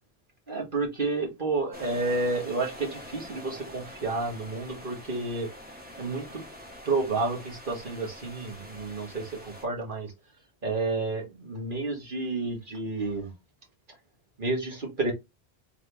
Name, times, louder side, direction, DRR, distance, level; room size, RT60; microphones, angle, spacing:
voice 1, 0.5-5.5 6.0-6.4 6.9-10.1 10.6-13.3 14.4-15.1, right 3 dB, 50° right, 1.7 m, -30 dB
sound 1, 1.7-9.6, left 1 dB, 10° right, 1.3 m, -45 dB
3.5 x 3.4 x 3.0 m
omnidirectional pair, 1.1 m